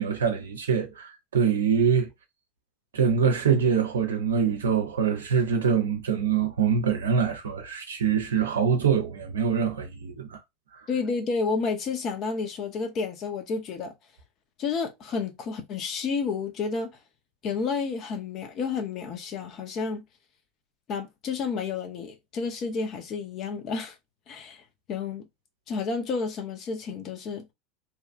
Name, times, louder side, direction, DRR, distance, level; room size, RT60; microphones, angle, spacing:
voice 1, 0.0-2.1 2.9-10.4, right 6 dB, 80° right, 0.4 m, -24 dB
voice 2, 10.9-13.9 14.6-16.9 17.4-20.0 20.9-24.0 24.3-25.3 25.7-27.4, left 5 dB, 45° left, 0.8 m, -30 dB
2.8 x 2.3 x 2.4 m
hypercardioid pair, 85°, 0 cm